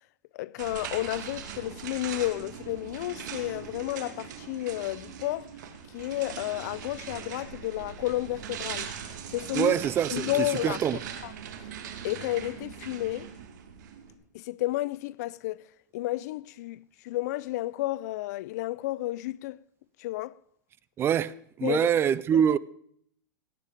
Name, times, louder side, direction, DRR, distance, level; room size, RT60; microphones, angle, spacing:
voice 1, 0.3-5.5 5.9-8.9 9.3-9.7 10.1-11.3 12.0-13.3 14.3-15.6 15.9-19.6 20.0-20.4 21.6-21.9, left 17 dB, 60° left, 0.5 m, -32 dB
sound 1, 0.6-14.1, right 8 dB, 65° right, 2.5 m, -40 dB
voice 2, 9.5-11.0 21.0-22.6, right 9 dB, 25° right, 0.5 m, -25 dB
18.0 x 9.3 x 5.1 m
hypercardioid pair, 135°, 10 cm